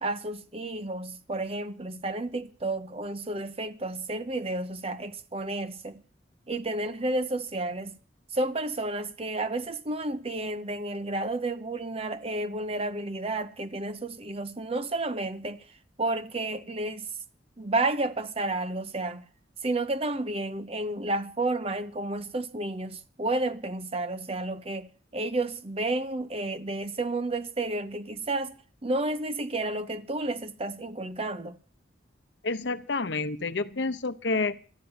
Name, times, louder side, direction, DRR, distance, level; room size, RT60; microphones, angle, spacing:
voice 1, 0.0-6.0 6.5-8.0 8.3-15.6 16.0-17.1 17.6-19.2 19.6-31.6, right 2 dB, 30° right, 0.8 m, -31 dB
voice 2, 32.4-34.6, left 3 dB, 70° left, 0.8 m, -29 dB
13.0 x 9.1 x 8.8 m
head